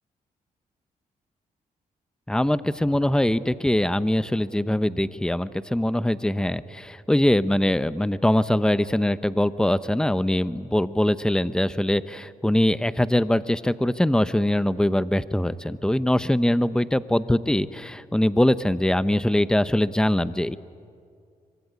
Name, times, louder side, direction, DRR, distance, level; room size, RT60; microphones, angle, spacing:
voice 1, 2.3-20.6, left 1 dB, 5° left, 14 dB, 0.9 m, -22 dB
25.0 x 24.0 x 9.8 m, 2.3 s
cardioid pair, 80°, 15 cm